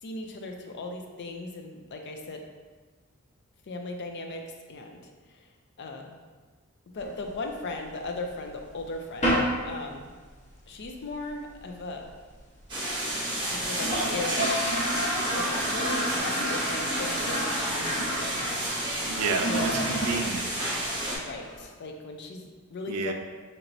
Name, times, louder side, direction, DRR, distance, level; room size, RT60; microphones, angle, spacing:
voice 1, 0.0-2.5 3.7-5.5 5.8-6.3 6.9-10.1 10.7-12.1 13.5-18.4 19.5-19.9 21.2-23.1, left 2 dB, 50° left, 3 dB, 0.4 m, -38 dB
sound 1, 7.0-8.0 8.4-8.5 8.8-8.9 9.2-9.7 9.9-10.0 10.3-10.4 10.7-11.1 11.5-11.6 11.7-11.8 12.1-12.2 12.7-12.8 13.1-13.2 13.4-21.7, equal, 30° left, 0.9 m, -31 dB
sound 2, 12.7-21.2, right 1 dB, 20° right, 0.8 m, -31 dB
voice 2, 19.1-20.5 22.9-23.1, right 4 dB, 80° right, 4 dB, 0.4 m, -30 dB
4.4 x 2.9 x 2.6 m, 1.4 s
head